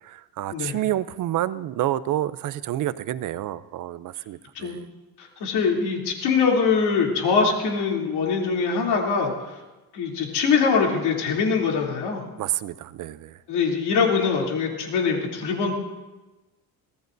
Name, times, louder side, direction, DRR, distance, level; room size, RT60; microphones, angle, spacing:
voice 1, 0.0-4.9 12.4-13.4, right 13 dB, 55° right, 15 dB, 0.5 m, -29 dB
voice 2, 5.2-9.6 9.9-12.2 13.5-15.7, left 5 dB, 80° left, -1 dB, 3.1 m, -23 dB
23.5 x 17.5 x 2.6 m, 1.1 s
cardioid pair, 150°, 39 cm